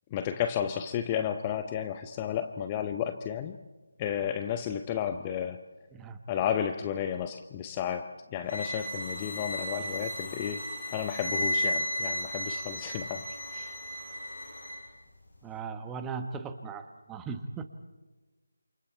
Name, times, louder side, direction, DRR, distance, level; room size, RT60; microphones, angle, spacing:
voice 1, 0.1-3.6 4.0-5.6 6.3-13.3 13.5-13.7, left 9 dB, 20° left, 8 dB, 0.7 m, -32 dB
sound 1, 8.5-14.8, equal, 60° left, 6.7 m, -34 dB
voice 2, 15.4-17.7, right 5 dB, 10° right, 8 dB, 1.1 m, -38 dB
28.0 x 28.0 x 4.5 m, 1.2 s
figure-of-eight pair, 160°, 0 cm